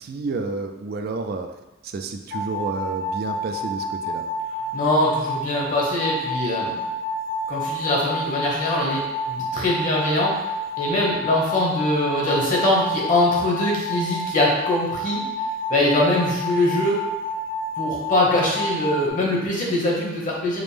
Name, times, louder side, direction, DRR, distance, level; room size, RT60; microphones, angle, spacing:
voice 1, 0.0-1.5 1.8-4.2, right 3 dB, 50° right, 6 dB, 0.3 m, -30 dB
sound 1, 2.3-19.1, equal, 80° left, 0.5 m, -29 dB
voice 2, 4.7-6.7 7.5-10.3 10.8-15.2 15.7-17.0 17.8-20.6, left 1 dB, 40° left, -4 dB, 0.9 m, -22 dB
4.9 x 2.0 x 3.4 m, 1.0 s
head